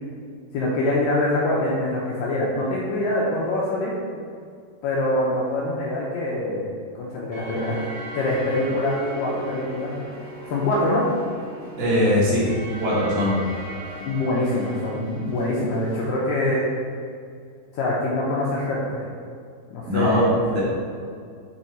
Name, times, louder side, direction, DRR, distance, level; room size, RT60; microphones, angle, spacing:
voice 1, 0.5-3.9 4.8-6.7 7.0-7.8 8.1-10.1 10.5-11.1 14.1-16.7 17.7-19.0 19.7-20.4, left 1 dB, 80° left, -5 dB, 2.0 m, -24 dB
sound 1, 7.3-16.1, equal, 55° right, 1.5 m, -38 dB
voice 2, 11.8-12.5 12.8-13.4 19.9-20.2 20.5-20.6, left 1 dB, 75° right, -7 dB, 3.4 m, -20 dB
7.6 x 3.6 x 4.2 m, 2.2 s
omnidirectional pair, 4.6 m